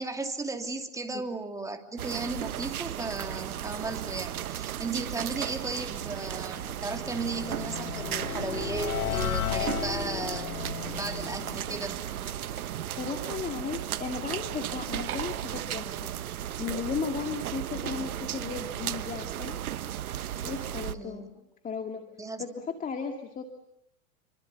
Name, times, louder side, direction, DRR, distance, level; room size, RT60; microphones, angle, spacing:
voice 1, 0.0-12.0 20.9-21.3 22.2-22.4, right 3 dB, 5° right, 5 dB, 2.9 m, -35 dB
sound 1, 2.0-20.9, right 11 dB, 80° right, 1.3 m, -35 dB
sound 2, 5.9-13.0, left 11 dB, 90° left, 1.4 m, -35 dB
voice 2, 13.0-16.1 16.6-19.6 20.4-22.1 22.4-23.4, left 5 dB, 20° left, 5 dB, 2.2 m, -35 dB
28.5 x 25.0 x 8.1 m, 0.79 s
hypercardioid pair, 125°, 43 cm